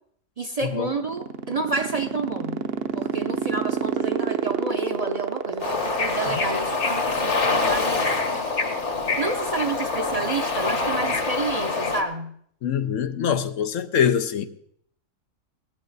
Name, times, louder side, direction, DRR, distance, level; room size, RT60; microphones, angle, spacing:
voice 1, 0.4-2.6 2.9-8.2 9.2-12.3, right 3 dB, 40° right, 0.7 m, -30 dB
sound 1, 0.7-7.3, right 8 dB, 55° right, 1.0 m, -27 dB
Bird / Ocean, 5.6-12.0, left 3 dB, 65° left, 1.9 m, -25 dB
voice 2, 12.6-14.5, left 8 dB, 85° left, 1.1 m, -23 dB
18.5 x 13.5 x 4.0 m
omnidirectional pair, 1.3 m